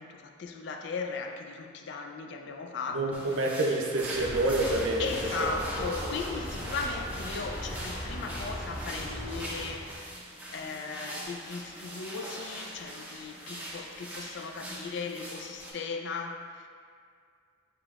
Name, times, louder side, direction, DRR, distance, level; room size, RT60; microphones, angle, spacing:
voice 1, 0.0-3.6 5.0-9.9 10.5-16.7, left 4 dB, 60° left, 4 dB, 0.4 m, -37 dB
voice 2, 2.9-5.1 5.5-5.6 6.0-6.1, right 2 dB, 80° right, 1 dB, 0.5 m, -28 dB
sound 1, 3.1-15.7, right 1 dB, 10° right, 0.5 m, -42 dB
Aircraft, 4.1-9.9, equal, 40° left, 1.4 m, -38 dB
6.8 x 2.9 x 2.4 m, 2.2 s
head